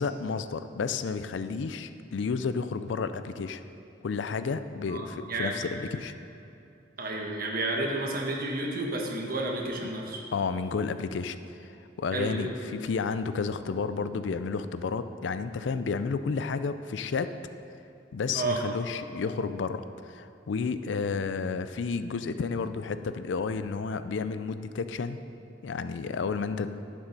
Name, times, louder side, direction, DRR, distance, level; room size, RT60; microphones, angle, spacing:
voice 1, 0.0-3.6 4.0-6.1 10.3-11.7 12.0-17.3 18.1-25.2 25.6-26.7, left 5 dB, 75° left, 11 dB, 0.4 m, -31 dB
voice 2, 4.9-5.6 7.0-10.2 12.1-12.5 18.3-18.6, right 2 dB, 50° right, 0 dB, 1.3 m, -31 dB
9.8 x 7.1 x 5.2 m, 2.7 s
head